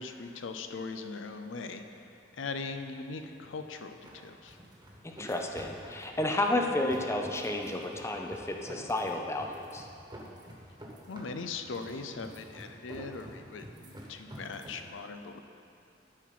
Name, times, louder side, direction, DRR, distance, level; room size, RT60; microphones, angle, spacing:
voice 1, 0.0-2.1 2.3-4.6 11.1-15.4, left 4 dB, 80° left, 7 dB, 0.5 m, -40 dB
sound 1, 1.5-14.8, equal, 25° right, 1.3 m, -49 dB
voice 2, 5.0-9.8, left 1 dB, 15° left, 2 dB, 0.5 m, -31 dB
12.5 x 4.7 x 5.9 m, 2.6 s
head